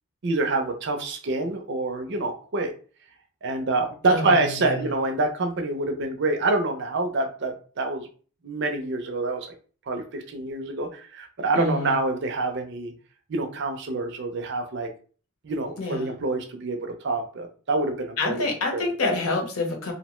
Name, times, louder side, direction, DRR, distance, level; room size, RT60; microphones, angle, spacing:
voice 1, 0.2-2.7 3.4-8.1 8.4-9.5 9.9-12.9 13.3-14.9 15.4-18.4 18.7-18.9, right 2 dB, 50° right, 4 dB, 0.5 m, -26 dB
voice 2, 4.0-4.9 11.5-12.0 15.8-16.1 18.2-19.9, left 2 dB, 75° left, 2 dB, 0.8 m, -27 dB
2.6 x 2.1 x 3.0 m, 0.40 s
head